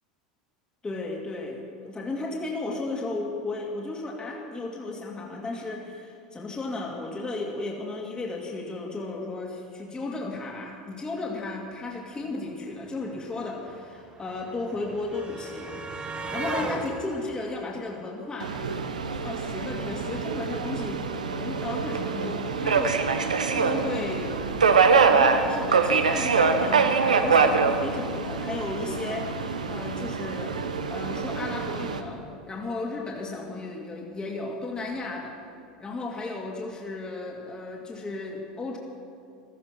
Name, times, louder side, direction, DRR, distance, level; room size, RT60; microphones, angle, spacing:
voice 1, 0.8-15.8 16.3-18.7 19.1-24.4 25.1-30.6 30.9-35.4 35.8-38.8, left 2 dB, 20° left, -1 dB, 2.5 m, -34 dB
sound 1, 12.3-12.4 12.6-18.8 20.0-20.1 20.4-20.5, right 2 dB, 25° right, 1.8 m, -37 dB
Subway metro underground, 18.4-32.0, right 5 dB, 90° right, 1.0 m, -24 dB
16.0 x 13.5 x 6.0 m, 2.5 s
hypercardioid pair, 85°, 4 cm